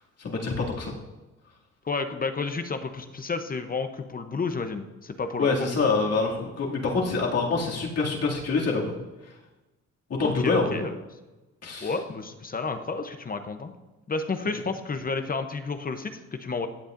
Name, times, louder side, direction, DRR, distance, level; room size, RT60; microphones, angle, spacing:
voice 1, 0.2-0.9 5.4-8.9 9.2-9.3 10.1-10.8 11.6-11.9, left 4 dB, 55° left, -3 dB, 2.4 m, -26 dB
voice 2, 1.8-5.7 10.2-10.9 11.8-13.7 14.1-16.7, left 4 dB, 30° left, 8 dB, 0.8 m, -31 dB
15.5 x 8.0 x 2.6 m, 1.1 s
cardioid pair, 90°, 30 cm